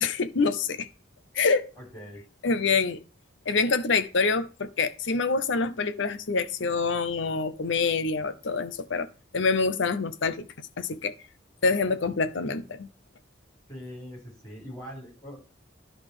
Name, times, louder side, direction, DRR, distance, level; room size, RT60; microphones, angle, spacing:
voice 1, 0.0-0.9 1.3-1.7 2.4-3.0 3.5-9.1 9.3-10.5 10.8-11.1 11.6-12.9, left 4 dB, 70° left, 0.7 m, -26 dB
voice 2, 1.8-2.2 13.7-15.4, equal, 20° left, 4.2 m, -42 dB
11.0 x 3.8 x 4.9 m
head